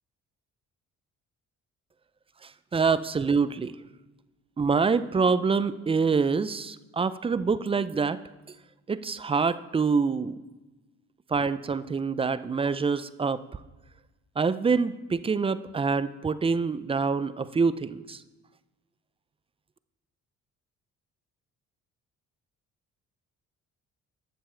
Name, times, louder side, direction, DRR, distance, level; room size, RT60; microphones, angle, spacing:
voice 1, 2.7-3.7 4.6-8.2 8.9-10.4 11.3-13.4 14.4-18.2, right 5 dB, 20° right, 14 dB, 0.4 m, -26 dB
10.5 x 6.9 x 4.4 m, 1.1 s
cardioid pair, 90°, 30 cm